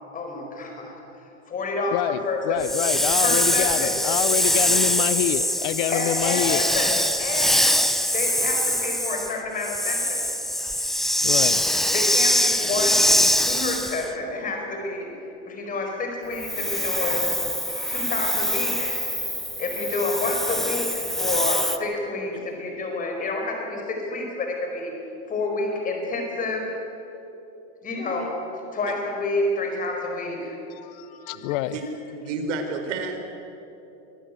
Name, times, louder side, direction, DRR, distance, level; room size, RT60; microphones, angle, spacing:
voice 1, 0.1-0.9 1.5-2.6 3.2-4.0 5.9-7.8 8.1-10.2 11.9-13.0 13.4-15.2 15.4-17.3 17.9-19.0 19.6-25.0 25.3-26.7 27.8-28.3 28.7-30.6 31.1-31.3, left 2 dB, 20° left, 2 dB, 4.8 m, -29 dB
voice 2, 1.9-6.6 11.2-11.6 30.7-31.8, left 14 dB, 45° left, 14 dB, 0.7 m, -27 dB
Hiss, 2.6-14.1 16.4-21.8, equal, ahead, 0.6 m, -23 dB
voice 3, 32.1-33.2, right 4 dB, 70° right, 5 dB, 4.2 m, -30 dB
23.5 x 15.0 x 9.4 m, 3.0 s
supercardioid pair, 150°, 38 cm